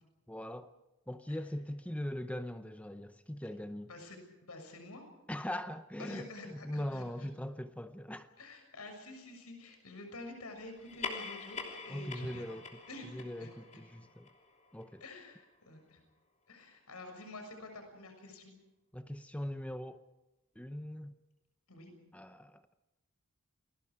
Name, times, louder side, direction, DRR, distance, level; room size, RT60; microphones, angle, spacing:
voice 1, 0.3-0.7 1.1-3.9 5.3-8.3 11.9-12.7 13.1-14.3 14.7-15.0 18.9-20.0 20.6-21.2 22.1-22.6, left 1 dB, 5° left, 0.7 m, -41 dB
voice 2, 3.9-5.1 6.0-7.3 8.4-12.6 12.9-13.8 15.0-16.0 16.5-18.5 21.7-21.9, left 2 dB, 90° left, 6.4 m, -49 dB
sound 1, 10.8-15.6, left 4 dB, 30° left, 3.1 m, -45 dB
29.5 x 21.0 x 4.8 m
head